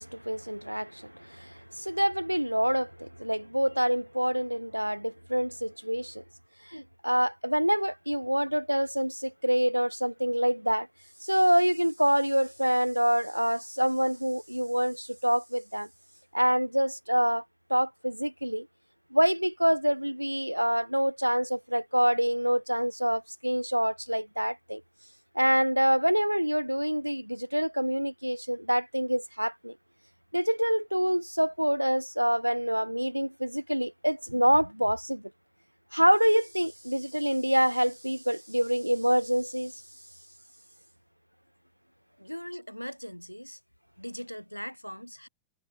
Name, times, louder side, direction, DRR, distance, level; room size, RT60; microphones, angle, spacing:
voice 1, 0.0-6.2 6.7-10.9 11.2-15.9 16.3-17.4 17.7-18.7 19.1-24.8 25.3-29.8 30.3-35.3 35.9-39.8, equal, 90° right, 1.1 m, -26 dB
voice 2, 42.2-43.6 44.0-45.3, equal, 90° left, 8.0 m, -40 dB
figure-of-eight pair, 90°, 0 cm